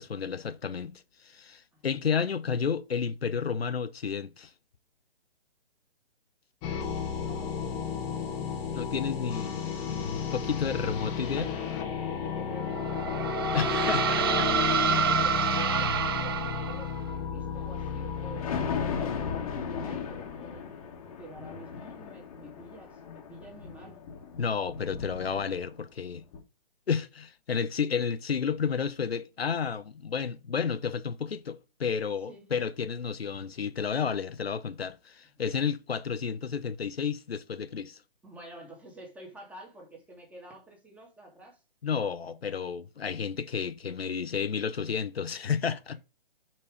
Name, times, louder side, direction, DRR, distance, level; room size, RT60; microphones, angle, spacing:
voice 1, 0.0-4.5 8.7-11.5 13.5-14.0 14.4-14.5 24.4-26.2 26.9-38.0 41.8-46.0, left 6 dB, 90° left, 0.8 m, -31 dB
sound 1, 6.6-20.7, left 7 dB, 15° left, 0.9 m, -33 dB
voice 2, 7.1-7.8 12.0-13.2 13.4-14.6 14.9-20.6 21.2-24.0 32.3-32.5 38.2-41.6 45.9-46.0, right 1 dB, 5° right, 1.7 m, -48 dB
sound 2, 12.7-17.1, right 7 dB, 25° right, 0.5 m, -28 dB
Thunder, 17.6-25.9 26.3-26.4, left 6 dB, 35° left, 1.4 m, -38 dB
5.9 x 4.7 x 4.7 m
hypercardioid pair, 150°, 30 cm